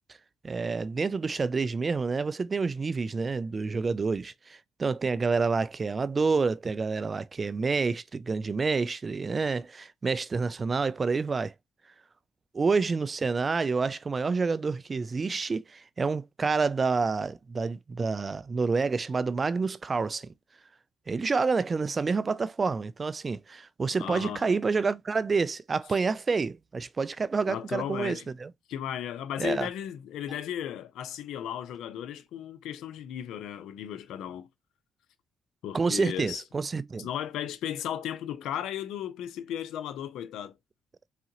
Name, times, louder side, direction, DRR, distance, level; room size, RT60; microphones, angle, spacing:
voice 1, 0.4-11.5 12.5-20.3 21.1-28.5 29.4-29.7 35.7-37.1, right 4 dB, 35° right, 0.3 m, -28 dB
voice 2, 24.0-24.4 27.5-28.2 28.7-34.5 35.6-36.4 37.0-40.5, left 10 dB, 85° left, 0.6 m, -35 dB
4.1 x 3.7 x 2.8 m
cardioid pair, 90°, 0 cm